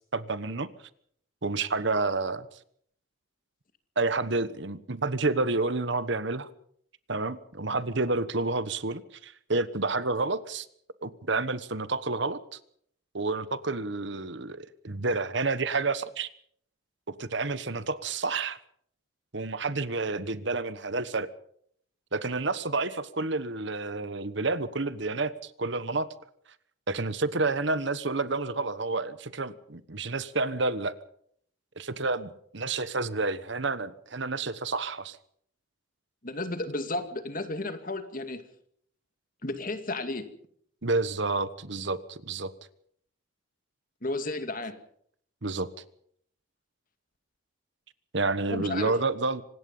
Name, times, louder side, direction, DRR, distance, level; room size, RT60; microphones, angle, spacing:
voice 1, 0.1-0.7 1.4-2.5 4.0-6.5 7.1-10.7 11.0-12.6 13.1-16.3 17.1-18.6 19.3-21.3 22.1-26.1 26.9-30.9 31.8-35.2 40.8-42.5 45.4-45.7 48.1-49.4, right 3 dB, 60° right, 14 dB, 1.2 m, -29 dB
voice 2, 36.2-38.4 39.4-40.3 44.0-44.7 48.5-49.0, left 2 dB, 40° left, 8 dB, 2.4 m, -33 dB
25.5 x 19.0 x 5.5 m, 0.65 s
head